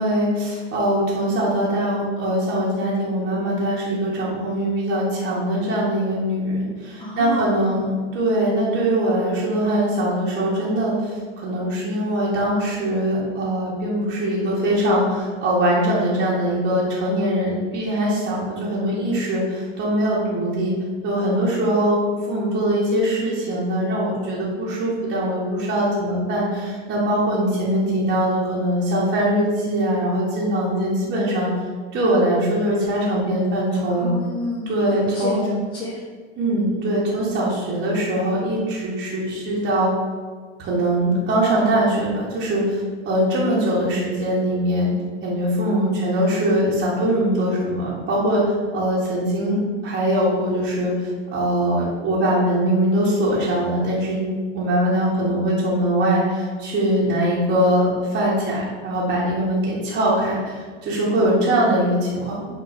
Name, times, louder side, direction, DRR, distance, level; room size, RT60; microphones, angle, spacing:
voice 1, 0.0-7.8 8.1-20.7 21.0-22.0 22.3-31.5 31.9-34.1 34.7-35.4 36.4-39.9 40.6-44.9 45.2-54.2 54.5-62.4, right 1 dB, 30° right, -6 dB, 1.0 m, -22 dB
voice 2, 7.0-7.9 33.9-36.0 36.6-36.7, left 1 dB, 15° left, -5 dB, 0.5 m, -30 dB
5.0 x 2.7 x 2.5 m, 1.6 s
hypercardioid pair, 105°, 36 cm